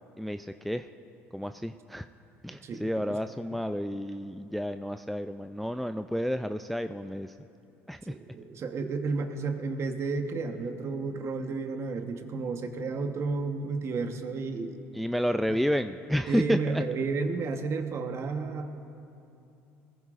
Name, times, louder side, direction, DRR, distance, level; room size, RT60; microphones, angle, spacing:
voice 1, 0.2-0.9 1.3-2.1 2.4-7.3 7.9-8.1 14.9-16.8, equal, ahead, 9 dB, 0.3 m, -30 dB
voice 2, 2.6-3.2 8.1-14.8 15.5-15.6 16.3-18.7, right 4 dB, 45° right, 6 dB, 1.1 m, -32 dB
21.0 x 15.0 x 2.5 m, 2.7 s
supercardioid pair, 80°, 6 cm